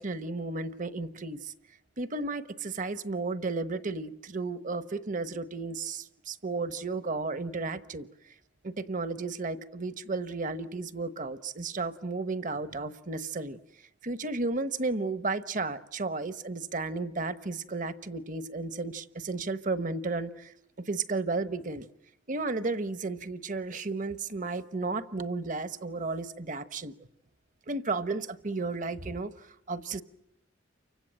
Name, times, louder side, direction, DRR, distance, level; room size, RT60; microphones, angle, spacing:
voice 1, 0.0-1.5 2.0-8.1 8.6-13.6 14.0-20.5 20.9-21.9 22.3-26.9 27.7-29.3 29.7-30.0, right 3 dB, 45° right, 12 dB, 1.0 m, -33 dB
29.5 x 24.5 x 7.6 m, 0.79 s
head